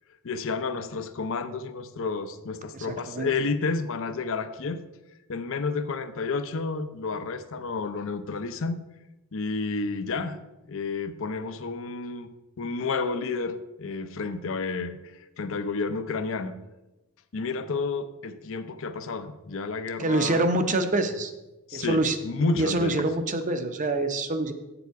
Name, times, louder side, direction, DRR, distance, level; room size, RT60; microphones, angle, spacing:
voice 1, 0.2-4.8 5.3-8.8 9.3-10.4 10.7-12.3 12.6-16.5 17.3-20.4 21.7-23.1, left 4 dB, 60° left, 10 dB, 0.6 m, -30 dB
voice 2, 2.9-3.3 20.0-21.3 21.7-22.2 22.6-24.5, right 2 dB, 35° right, 8 dB, 0.7 m, -25 dB
8.1 x 7.0 x 4.6 m, 1.0 s
head